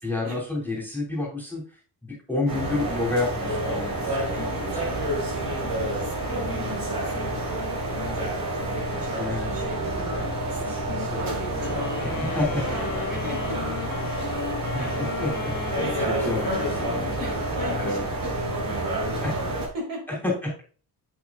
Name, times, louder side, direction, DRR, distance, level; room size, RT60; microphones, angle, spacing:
voice 1, 0.0-1.6 2.0-4.8 9.2-9.5 10.0-10.2 10.5-11.2 12.0-12.7 12.9-13.0 14.6-17.0 17.8-18.0 19.2-19.3 20.2-20.6, left 2 dB, 5° left, -4 dB, 2.9 m, -30 dB
sound 1, 2.5-19.7, right 1 dB, 85° right, 4.6 m, -29 dB
voice 2, 4.3-10.1 10.5-13.6 14.7-15.0 15.8-20.2, equal, 60° right, 0 dB, 4.3 m, -38 dB
sound 2, 11.6-18.0, left 7 dB, 55° left, 1.4 m, -36 dB
8.5 x 8.5 x 2.4 m, 0.40 s
wide cardioid pair, 140°, 39 cm